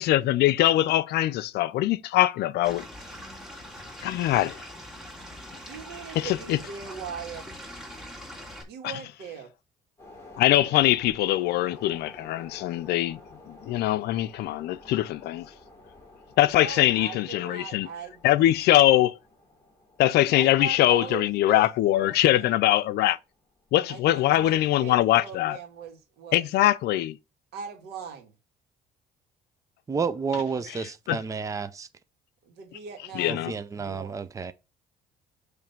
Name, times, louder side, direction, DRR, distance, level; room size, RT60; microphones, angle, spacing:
voice 1, 0.0-2.8 4.0-4.6 6.2-6.6 8.8-8.9 10.4-13.2 13.5-15.5 16.4-17.9 18.2-19.2 20.0-23.2 23.7-25.6 26.3-27.2 30.7-30.8 31.1-31.2 33.1-33.5, left 14 dB, 75° left, 0.5 m, -22 dB
Stream / Liquid, 2.6-8.6, equal, 5° right, 2.7 m, -42 dB
voice 2, 5.6-7.4 8.7-9.5 16.6-18.9 20.4-22.6 23.9-26.5 27.5-28.3 32.4-34.2, right 6 dB, 80° right, 2.0 m, -40 dB
sound 1, 10.0-24.5 24.9-25.0, left 2 dB, 15° left, 3.2 m, -51 dB
voice 3, 29.9-31.9 33.3-34.5, right 5 dB, 20° right, 0.5 m, -30 dB
7.0 x 3.2 x 5.9 m
cardioid pair, 110°, 17 cm